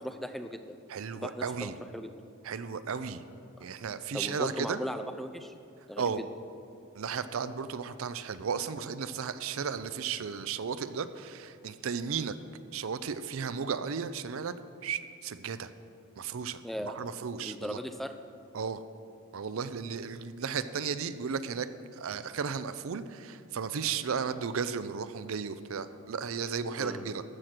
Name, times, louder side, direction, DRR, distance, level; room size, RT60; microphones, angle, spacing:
voice 1, 0.0-0.8 1.1-2.1 4.1-5.5 5.9-6.2 16.6-16.9 17.4-18.1 26.8-27.1, equal, ahead, 6 dB, 0.4 m, -37 dB
voice 2, 0.9-1.8 2.4-3.2 3.6-4.8 6.0-6.2 6.9-12.3 12.7-14.5 14.8-15.7 16.2-17.8 18.5-18.8 19.3-27.2, right 6 dB, 70° right, 13 dB, 0.5 m, -34 dB
14.0 x 6.5 x 6.0 m, 2.6 s
head